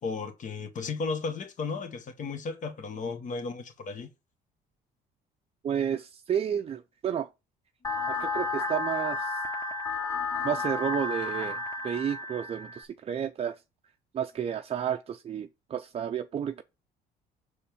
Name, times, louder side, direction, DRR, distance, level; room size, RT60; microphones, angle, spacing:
voice 1, 0.0-4.1 8.0-8.3 10.1-10.4, left 4 dB, 50° left, 1.7 m, -35 dB
voice 2, 5.6-7.3 8.1-9.4 10.4-13.6 14.1-16.6, right 8 dB, 35° right, 0.5 m, -31 dB
sound 1, 7.8-12.8, left 3 dB, 20° left, 1.4 m, -32 dB
6.4 x 4.1 x 5.2 m
cardioid pair, 110°, 17 cm